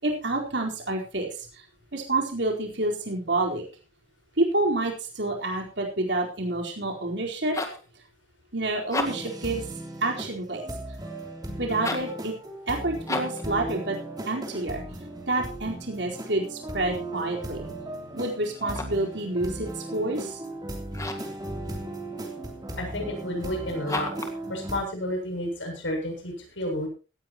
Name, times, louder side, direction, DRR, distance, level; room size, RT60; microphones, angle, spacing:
voice 1, 0.0-1.6 1.9-3.6 4.4-7.6 8.5-9.6 10.0-10.6 11.6-12.3 12.7-14.0 14.3-14.8 15.3-17.7 18.1-20.4, right 2 dB, 65° right, 0 dB, 4.3 m, -28 dB
sound 1, 7.2-7.9 8.8-9.4 11.7-12.2 13.0-13.5 18.5-19.1 20.9-21.4 23.8-24.4, left 2 dB, 15° left, 1.9 m, -33 dB
sound 2, 9.0-24.8, right 1 dB, 20° right, 3.2 m, -37 dB
voice 2, 22.8-24.1 24.5-26.9, left 1 dB, 80° left, 2 dB, 7.4 m, -31 dB
18.0 x 14.5 x 3.0 m, 0.33 s
head